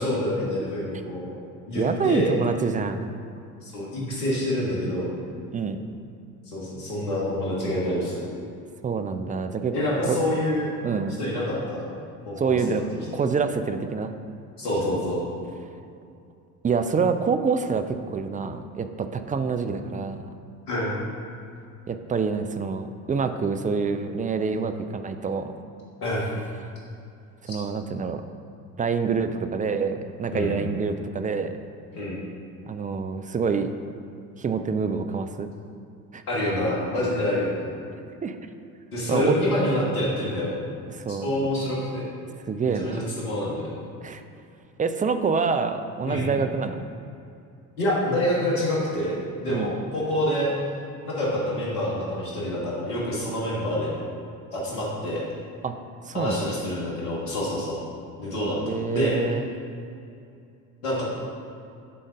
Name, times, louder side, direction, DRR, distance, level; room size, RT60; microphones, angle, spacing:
voice 1, 0.0-1.3 1.7-2.4 3.6-5.1 6.5-8.2 9.7-10.7 11.2-11.9 12.3-12.9 14.6-15.2 20.7-21.0 26.0-26.3 27.5-27.6 30.3-30.5 31.9-32.2 36.3-37.7 38.9-40.5 41.1-42.1 42.6-43.7 46.1-46.3 47.8-50.5 51.0-53.9 54.5-55.2 56.1-57.8 58.2-59.1 60.8-61.0, left 1 dB, 80° left, -6 dB, 1.8 m, -27 dB
voice 2, 1.8-3.1 5.5-5.8 8.8-9.7 10.1-10.2 10.8-11.2 12.4-12.8 13.1-14.1 16.6-20.2 21.9-25.5 27.5-28.2 28.8-31.5 32.7-33.7 34.4-35.5 36.1-36.2 38.2-38.4 39.1-39.4 40.9-41.3 42.5-43.0 44.0-44.2 44.8-46.8 49.5-49.7 55.6-55.8 56.1-56.4 58.7-59.5, right 5 dB, 20° right, 8 dB, 0.4 m, -26 dB
9.7 x 3.8 x 5.1 m, 2.5 s
hypercardioid pair, 60°, 45 cm